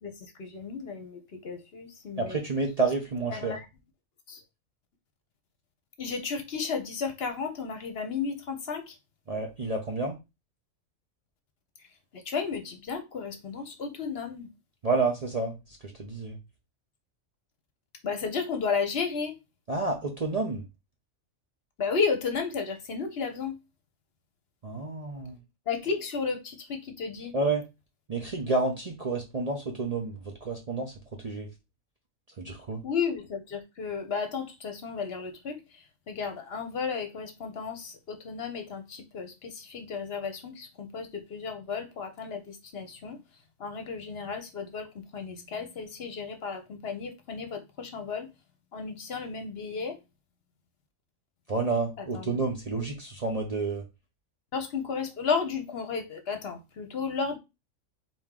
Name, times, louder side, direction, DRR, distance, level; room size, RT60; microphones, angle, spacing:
voice 1, 0.0-2.4 3.3-3.6 4.3-4.4 6.0-9.0 11.8-14.5 18.0-19.4 21.8-23.6 25.7-27.3 32.8-43.2 43.6-48.3 48.7-50.0 52.0-52.4 52.7-52.9 54.5-57.4, left 5 dB, 60° left, 0.9 m, -33 dB
voice 2, 2.2-3.5 9.3-10.2 14.8-16.4 19.7-20.6 24.6-25.4 27.3-27.6 28.1-30.9 31.2-31.5 32.4-32.8 51.5-53.8, right 3 dB, 40° right, 0.6 m, -30 dB
4.2 x 3.0 x 3.6 m
omnidirectional pair, 1.3 m